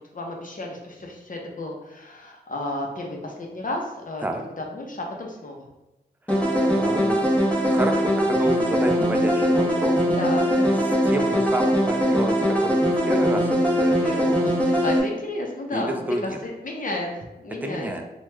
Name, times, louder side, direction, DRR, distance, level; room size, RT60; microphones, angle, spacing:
voice 1, 0.1-5.7 6.5-7.3 9.4-9.7 10.1-11.0 13.7-18.1, left 2 dB, 50° left, 0 dB, 0.7 m, -33 dB
sound 1, 6.3-15.0, equal, 10° left, 0.9 m, -21 dB
voice 2, 6.3-7.2 7.6-10.0 10.8-14.4 15.7-16.4 17.6-18.0, right 1 dB, 10° right, 4 dB, 0.4 m, -29 dB
3.0 x 2.3 x 3.2 m, 0.97 s
cardioid pair, 50°, 17 cm